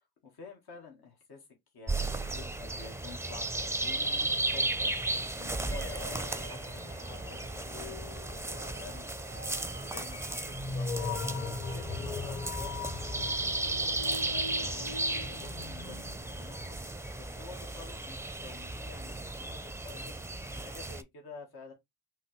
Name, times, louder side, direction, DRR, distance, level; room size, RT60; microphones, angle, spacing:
voice 1, 0.0-1.5 1.7-5.0 5.3-8.1 8.6-10.4 10.7-12.9 13.3-15.0 15.3-16.8 17.1-20.1 20.5-21.7, left 5 dB, 80° left, 1.6 m, -50 dB
sound 1, 1.9-21.0, right 2 dB, 5° right, 0.5 m, -35 dB
sound 2, 5.7-16.7, left 3 dB, 35° left, 0.7 m, -40 dB
5.5 x 3.0 x 3.1 m
cardioid pair, 90°, 37 cm